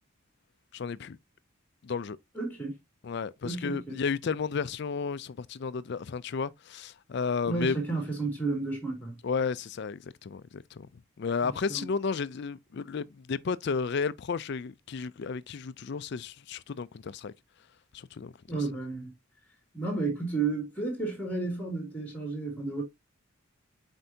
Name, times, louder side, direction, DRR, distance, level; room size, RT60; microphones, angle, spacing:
voice 1, 0.7-1.2 1.8-2.2 3.0-7.8 9.2-10.9 11.2-17.3 17.9-18.3, left 5 dB, 50° left, 0.4 m, -33 dB
voice 2, 2.3-2.8 3.4-4.0 7.5-9.2 11.4-11.9 18.5-19.1 19.7-22.8, right 3 dB, 5° left, 2.6 m, -32 dB
7.8 x 4.4 x 2.7 m
head